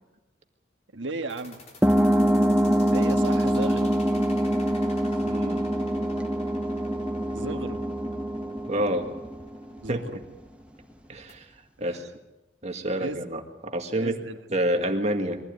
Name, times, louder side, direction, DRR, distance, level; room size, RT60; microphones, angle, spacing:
voice 1, 0.9-1.6 2.9-3.9 7.3-7.8 9.8-10.2 11.8-12.0 12.9-13.2 13.9-14.4, right 2 dB, 85° right, 6 dB, 1.6 m, -34 dB
sound 1, 1.3-11.3, left 2 dB, 35° left, 3.5 m, -48 dB
sound 2, 1.8-9.9, equal, 5° right, 0.8 m, -24 dB
voice 2, 5.2-5.6 8.7-9.0 9.9-10.0 11.1-11.5 11.8-12.1 12.6-14.2 14.5-15.4, right 1 dB, 35° right, 4 dB, 2.0 m, -28 dB
23.0 x 15.5 x 9.6 m, 1.0 s
head